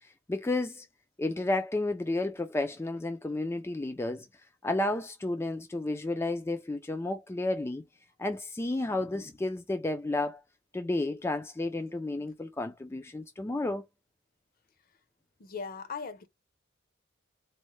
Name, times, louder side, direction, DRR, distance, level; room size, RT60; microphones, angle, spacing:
voice 1, 0.0-0.9 1.2-4.3 4.6-7.8 8.2-10.4 10.7-13.8, left 2 dB, 15° left, 0.3 m, -32 dB
voice 2, 15.4-16.3, left 5 dB, 45° left, 0.6 m, -39 dB
4.1 x 2.1 x 3.0 m
head